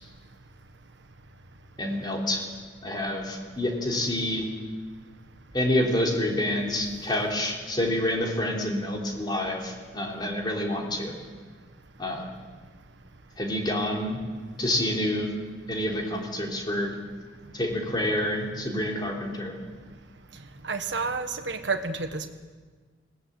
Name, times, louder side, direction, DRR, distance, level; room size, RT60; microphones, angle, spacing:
voice 1, 1.8-2.4 2.8-4.4 5.5-11.1 12.0-12.3 13.4-14.2 14.6-15.3 15.7-16.9 17.5-19.6, left 1 dB, 25° left, 0 dB, 3.4 m, -28 dB
voice 2, 20.6-22.3, right 4 dB, 65° right, 6 dB, 1.4 m, -30 dB
20.5 x 17.0 x 8.3 m, 1.5 s
head